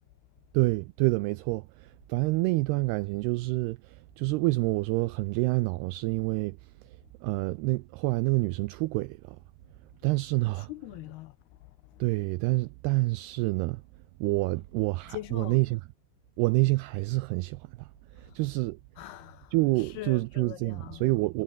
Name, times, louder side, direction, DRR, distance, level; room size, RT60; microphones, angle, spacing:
voice 1, 0.5-9.4 10.0-10.7 12.0-13.8 14.2-15.8 16.4-18.8 19.5-21.4, right 22 dB, 85° right, 2.3 m, -28 dB
voice 2, 10.6-12.0 15.1-15.6 18.1-18.4 19.0-21.2, left 17 dB, 80° left, 2.3 m, -43 dB
omnidirectional pair, 5.2 m